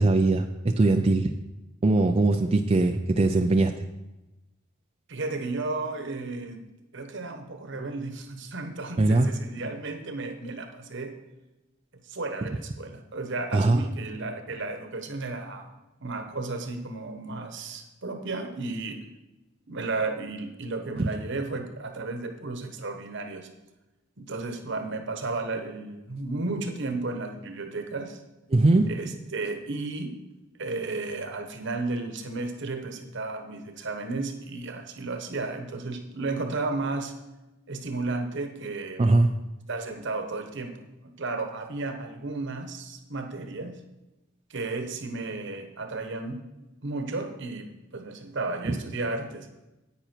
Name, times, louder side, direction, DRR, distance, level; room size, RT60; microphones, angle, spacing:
voice 1, 0.0-1.3 1.8-3.7 9.0-9.3 13.5-13.9 21.0-21.1 28.5-28.9 39.0-39.3, right 2 dB, 30° right, 5 dB, 0.4 m, -21 dB
voice 2, 5.1-6.6 6.9-11.2 12.0-15.7 16.0-19.0 19.7-23.5 24.2-28.2 28.9-30.2 30.6-37.1 37.7-39.0 39.7-40.8 41.2-43.8 44.5-46.4 46.8-49.5, right 3 dB, 60° right, 6 dB, 1.1 m, -33 dB
9.8 x 8.9 x 4.5 m, 1.0 s
head